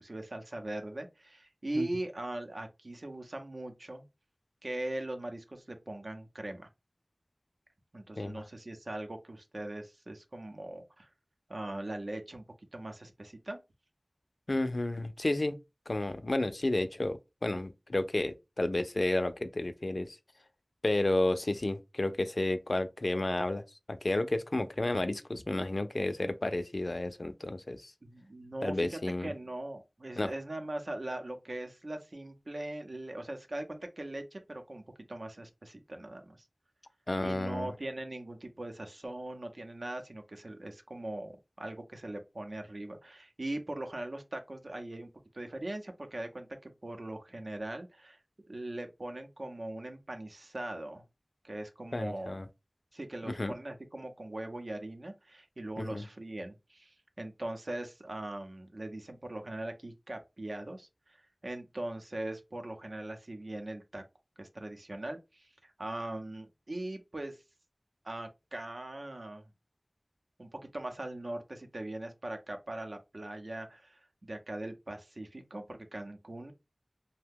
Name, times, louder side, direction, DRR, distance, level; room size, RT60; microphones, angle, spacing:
voice 1, 0.0-4.1 4.6-6.7 7.9-11.1 11.5-12.4 12.7-13.6 28.0-34.8 35.1-36.4 37.2-41.3 41.6-45.1 45.3-48.2 48.5-51.0 51.4-52.4 52.9-64.0 64.4-67.4 68.0-69.4 70.4-76.5, right 1 dB, 80° right, 0.6 m, -40 dB
voice 2, 14.5-15.5 15.9-20.2 20.8-27.9 28.6-29.3 30.2-30.3 37.1-37.7 51.9-52.5 53.2-53.5 55.8-56.0, left 2 dB, 70° left, 0.4 m, -31 dB
2.8 x 2.1 x 3.6 m
wide cardioid pair, 45°, 0 cm